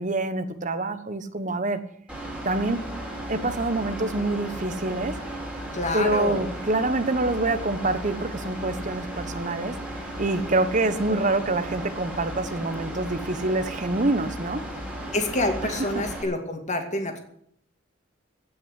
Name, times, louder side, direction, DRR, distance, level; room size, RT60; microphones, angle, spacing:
voice 1, 0.0-1.8 2.4-2.8 3.3-5.4 5.9-14.6 15.6-16.0, right 2 dB, 40° right, 10 dB, 1.2 m, -26 dB
Mechanical fan, 2.1-16.2, right 1 dB, 5° right, 3.8 m, -35 dB
voice 2, 5.7-6.4 15.1-17.2, left 2 dB, 35° left, 4 dB, 2.3 m, -27 dB
16.5 x 6.3 x 9.8 m, 0.70 s
head